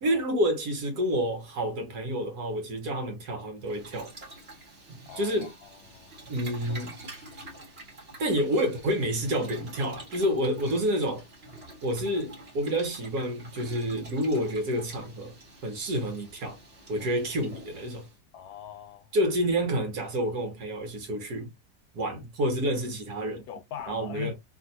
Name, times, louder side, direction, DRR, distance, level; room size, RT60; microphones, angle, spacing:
voice 1, 0.0-4.1 5.1-5.5 6.3-7.0 8.2-11.2 11.8-15.3 15.6-16.6 16.9-18.1 19.1-21.5 21.9-23.4 23.9-24.3, equal, 70° right, 1.6 m, -29 dB
Boiling, 3.6-18.2, right 2 dB, 35° right, 1.6 m, -47 dB
voice 2, 5.1-6.1 18.3-19.1 23.5-24.3, left 9 dB, 70° left, 1.0 m, -41 dB
3.1 x 2.7 x 2.6 m
omnidirectional pair, 1.8 m